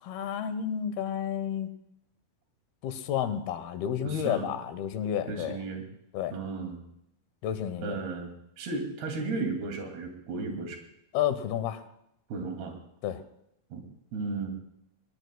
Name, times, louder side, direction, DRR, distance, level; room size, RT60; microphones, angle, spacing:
voice 1, 0.0-1.7 2.8-5.6 6.1-6.3 7.4-8.0 11.1-11.8 13.0-13.2, left 9 dB, 80° left, 11 dB, 2.9 m, -31 dB
voice 2, 4.0-4.5 5.3-5.8 6.3-6.8 7.8-8.3 8.6-10.8 12.3-12.8 13.7-13.8 14.1-14.5, right 3 dB, 90° right, 3 dB, 4.5 m, -34 dB
22.0 x 20.0 x 2.2 m, 0.80 s
omnidirectional pair, 4.4 m